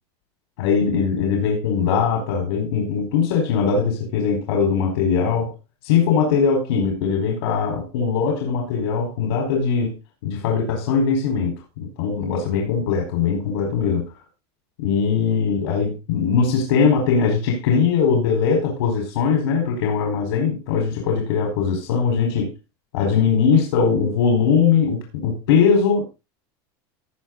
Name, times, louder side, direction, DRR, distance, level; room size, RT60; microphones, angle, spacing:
voice 1, 0.6-5.5 5.8-10.0 10.2-14.0 14.8-22.5 22.9-26.1, left 6 dB, 85° left, 4.8 m, -20 dB
18.0 x 6.3 x 3.9 m
supercardioid pair, 165°, 13 cm